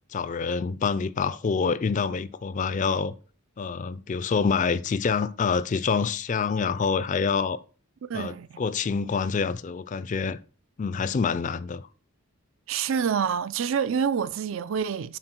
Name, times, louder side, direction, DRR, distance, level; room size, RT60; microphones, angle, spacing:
voice 1, 0.1-3.1 3.6-7.6 8.1-10.4 10.8-11.9, left 5 dB, 35° left, 0.3 m, -26 dB
voice 2, 8.1-8.6 12.7-15.2, right 7 dB, 65° right, 0.4 m, -27 dB
7.8 x 4.6 x 4.4 m
head